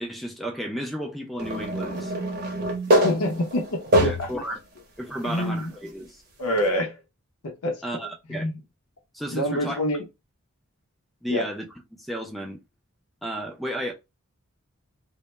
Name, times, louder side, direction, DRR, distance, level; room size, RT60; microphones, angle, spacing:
voice 1, 0.0-2.1 4.0-4.6 5.0-6.2 7.8-8.4 9.1-9.8 11.2-11.6 12.0-12.6 13.2-13.9, equal, ahead, 0.3 m, -33 dB
sound 1, 1.4-4.5 5.1-5.2 6.6-6.7, equal, 45° right, 0.7 m, -24 dB
voice 2, 3.0-4.3 5.2-5.7 6.4-7.0 7.4-7.8 8.3-8.5 9.3-10.0 11.3-11.4, left 1 dB, 85° left, 0.6 m, -26 dB
2.1 x 2.1 x 3.0 m
head